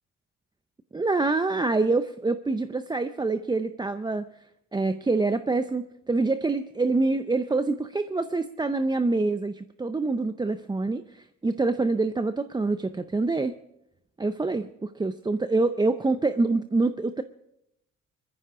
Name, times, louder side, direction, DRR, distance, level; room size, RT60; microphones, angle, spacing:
voice 1, 0.9-4.3 4.7-13.6 14.2-17.2, right 3 dB, 15° right, 11 dB, 0.5 m, -26 dB
20.0 x 14.5 x 3.7 m, 0.82 s
cardioid pair, 90°, 30 cm